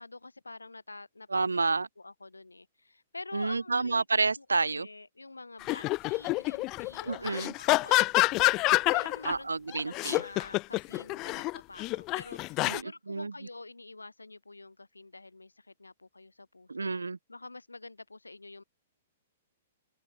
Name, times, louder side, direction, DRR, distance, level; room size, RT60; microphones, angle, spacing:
voice 1, 0.0-1.6 2.0-4.0 4.4-16.9 17.3-18.6, left 3 dB, 85° left, 7.8 m, -47 dB
voice 2, 1.3-1.9 3.3-4.9 7.1-7.5 9.3-10.2 12.7-13.3 16.7-17.2, right 3 dB, 85° right, 0.6 m, -29 dB
sound 1, 5.6-9.3 9.7-12.8, left 20 dB, 35° left, 0.3 m, -27 dB
open air
figure-of-eight pair, 115°, 0 cm